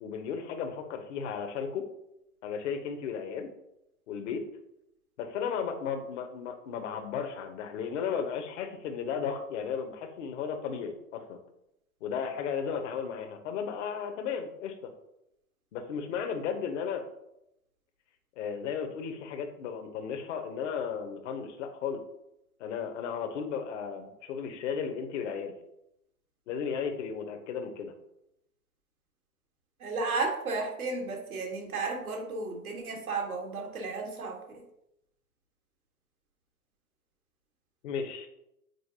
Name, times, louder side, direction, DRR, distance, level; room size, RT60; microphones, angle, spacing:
voice 1, 0.0-1.8 2.4-3.5 4.1-4.4 5.2-11.4 12.0-14.9 15.7-17.0 18.4-22.0 22.6-25.5 26.5-27.9 37.8-38.3, left 6 dB, 55° left, 5 dB, 1.0 m, -34 dB
voice 2, 29.8-34.6, right 3 dB, 75° right, 1 dB, 1.6 m, -33 dB
7.8 x 4.5 x 2.8 m, 0.83 s
figure-of-eight pair, 95°, 43 cm